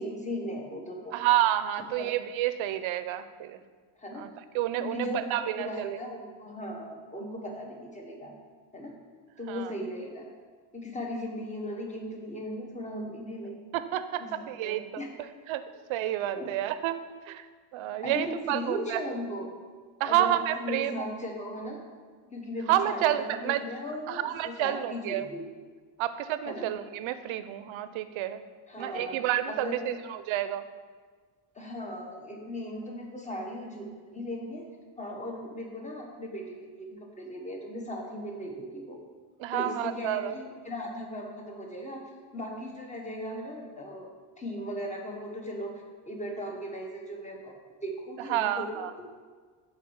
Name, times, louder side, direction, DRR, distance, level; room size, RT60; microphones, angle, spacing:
voice 1, 0.0-1.1 2.0-2.1 4.0-4.3 4.8-8.3 8.7-9.0 9.4-10.3 10.7-13.6 14.2-15.1 16.3-16.5 18.0-19.5 20.0-21.8 22.3-25.5 26.5-26.7 28.7-30.0 31.5-34.6 35.0-39.0 39.5-42.0 42.3-44.1 44.4-45.7 46.0-47.5 47.8-49.1, equal, 15° left, 1 dB, 1.2 m, -37 dB
voice 2, 1.1-3.6 4.2-4.3 4.5-6.0 9.5-9.7 13.7-15.6 15.9-17.5 17.7-19.0 20.0-21.1 22.7-23.6 24.1-25.2 26.0-28.4 28.8-30.6 39.4-40.3 48.3-48.9, right 12 dB, 80° right, 12 dB, 0.6 m, -29 dB
5.8 x 4.6 x 6.4 m, 1.5 s
cardioid pair, 110°, 47 cm